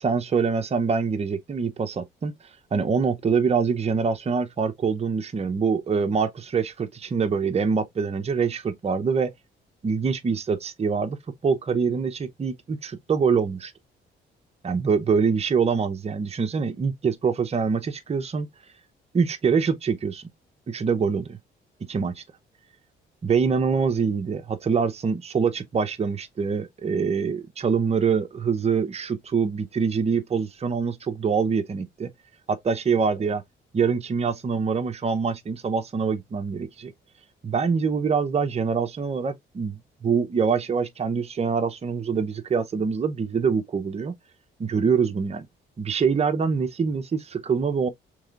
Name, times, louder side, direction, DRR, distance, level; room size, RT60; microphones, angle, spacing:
voice 1, 0.0-2.3 2.7-9.3 9.8-11.2 11.4-13.7 14.6-18.5 19.1-20.3 20.7-21.4 21.9-22.2 23.2-32.1 32.5-33.4 33.7-36.9 37.4-44.1 44.6-45.5 45.8-47.9, right 5 dB, 30° right, 0.7 m, -24 dB
4.8 x 3.4 x 2.4 m
cardioid pair, 90°, 20 cm